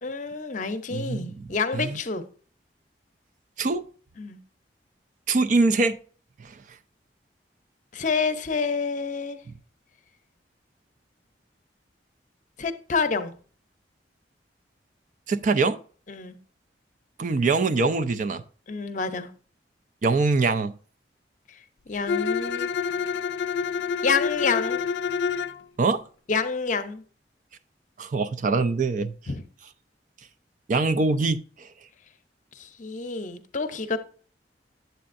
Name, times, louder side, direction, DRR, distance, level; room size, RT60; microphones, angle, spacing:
voice 1, 0.0-2.3 4.2-4.4 7.9-9.4 12.6-13.4 16.1-16.4 18.7-19.3 21.9-22.7 24.0-24.8 26.3-27.0 29.3-29.4 32.5-34.0, left 4 dB, 45° left, 0.7 m, -28 dB
voice 2, 0.9-1.5 1.7-2.0 3.6-3.8 5.3-6.0 6.4-6.6 15.3-15.8 17.2-18.4 20.0-20.7 25.8-26.0 28.0-29.1 30.7-31.7, right 3 dB, 45° right, 0.4 m, -23 dB
Bowed string instrument, 22.1-25.6, left 6 dB, 85° left, 0.4 m, -27 dB
8.5 x 7.8 x 2.5 m
head